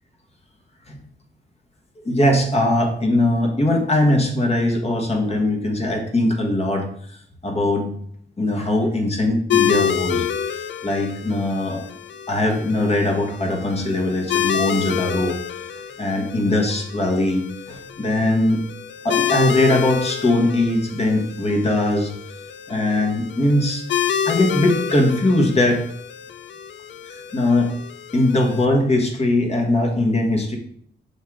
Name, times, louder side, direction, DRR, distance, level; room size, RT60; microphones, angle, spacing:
voice 1, 2.0-6.9 7.4-8.0 8.4-10.3 10.8-11.8 12.3-15.4 16.0-18.6 19.0-22.1 22.7-23.8 24.2-25.8 27.0-27.7 28.1-30.6, left 1 dB, 35° left, 1 dB, 1.5 m, -20 dB
sound 1, 9.5-28.6, left 8 dB, 75° left, 0.5 m, -28 dB
6.3 x 3.8 x 4.8 m, 0.64 s
cardioid pair, 95°, 19 cm